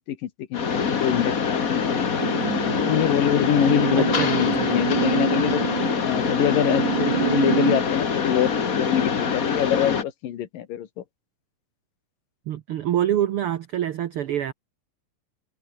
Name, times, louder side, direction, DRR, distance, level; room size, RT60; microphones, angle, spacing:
voice 1, 0.1-2.3 2.6-5.6 6.0-11.0, left 11 dB, 85° left, 3.4 m, -25 dB
Mechanisms, 0.5-10.0, left 6 dB, 40° left, 1.4 m, -24 dB
sound 1, 2.2-7.8, right 12 dB, 70° right, 2.7 m, -28 dB
voice 2, 4.0-4.8 12.5-14.5, right 11 dB, 85° right, 1.2 m, -26 dB
omnidirectional pair, 3.8 m